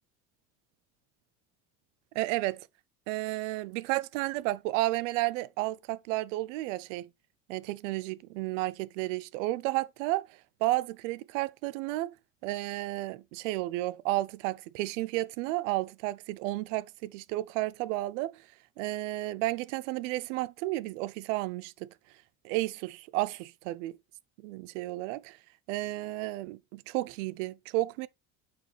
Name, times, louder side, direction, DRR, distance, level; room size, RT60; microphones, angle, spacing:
voice 1, 2.1-2.7 3.1-7.1 7.5-12.2 12.4-18.5 18.8-21.9 22.4-24.0 24.4-25.4 25.7-28.1, right 18 dB, 90° right, 0.6 m, -32 dB
8.6 x 4.4 x 3.2 m
supercardioid pair, 105°, 36 cm